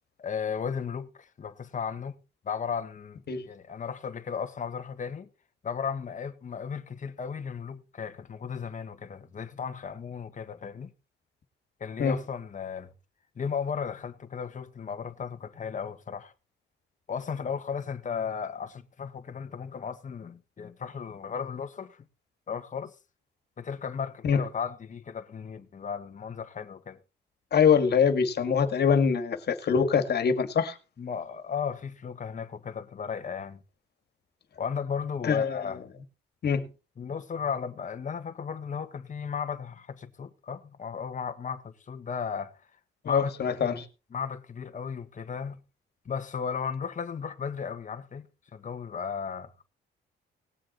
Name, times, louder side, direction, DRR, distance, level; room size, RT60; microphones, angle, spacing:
voice 1, 0.2-2.2 2.4-5.3 5.6-10.9 11.8-12.9 13.3-16.3 17.1-22.0 22.5-22.9 23.6-27.0 31.0-33.6 34.6-35.8 37.0-42.5 43.0-43.7 44.1-45.6 46.0-49.6, left 6 dB, 40° left, 1.6 m, -35 dB
voice 2, 27.5-30.8 35.2-35.6 36.4-36.6 43.0-43.9, left 6 dB, 55° left, 2.3 m, -24 dB
19.5 x 7.6 x 4.1 m
cardioid pair, 90°, 20 cm